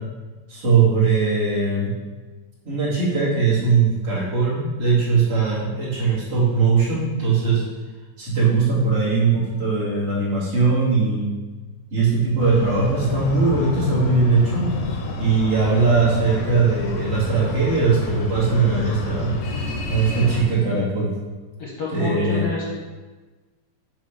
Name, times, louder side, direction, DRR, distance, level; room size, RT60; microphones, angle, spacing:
voice 1, 0.5-1.9 2.7-7.6 8.2-11.3 11.9-14.7 15.2-19.3 19.9-21.1 21.9-22.5, right 4 dB, 40° right, -10 dB, 3.6 m, -20 dB
Breathing, 12.4-20.4, left 3 dB, 85° left, 2.8 m, -28 dB
voice 2, 21.6-22.7, left 2 dB, 55° left, -5 dB, 1.8 m, -28 dB
9.9 x 3.7 x 6.1 m, 1.3 s
omnidirectional pair, 3.9 m